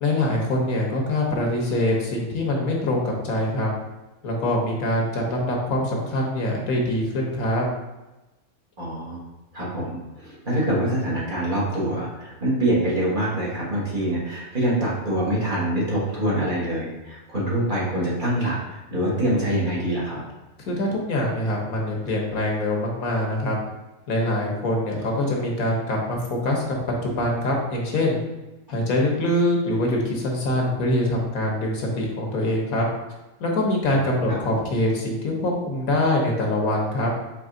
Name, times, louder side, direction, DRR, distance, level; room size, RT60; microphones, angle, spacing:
voice 1, 0.0-3.7 4.2-7.7 20.7-23.6 24.1-26.8 27.0-28.2 28.7-32.9 33.4-37.1, left 1 dB, 75° left, 0 dB, 1.4 m, -24 dB
voice 2, 8.8-9.2 9.5-20.2 34.3-34.4, right 1 dB, 35° right, -7 dB, 1.5 m, -25 dB
4.3 x 3.2 x 3.7 m, 1.1 s
omnidirectional pair, 1.5 m